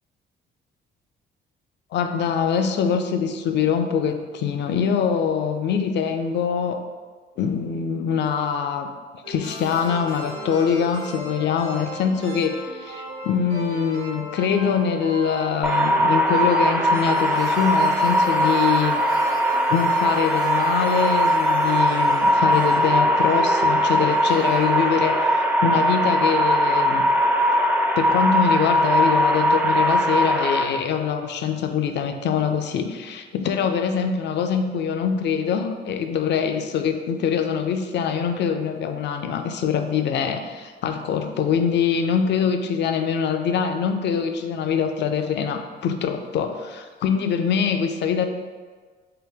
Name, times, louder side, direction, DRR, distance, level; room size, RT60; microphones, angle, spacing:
voice 1, 1.9-6.8 7.4-8.9 9.3-19.0 19.7-27.1 28.0-48.3, left 7 dB, 60° left, 7 dB, 0.4 m, -24 dB
sound 1, 9.2-25.8, right 1 dB, 75° right, 1.2 m, -36 dB
sound 2, 15.6-30.6, equal, 10° right, 0.4 m, -20 dB
3.4 x 2.9 x 3.4 m, 1.5 s
cardioid pair, 90°, 20 cm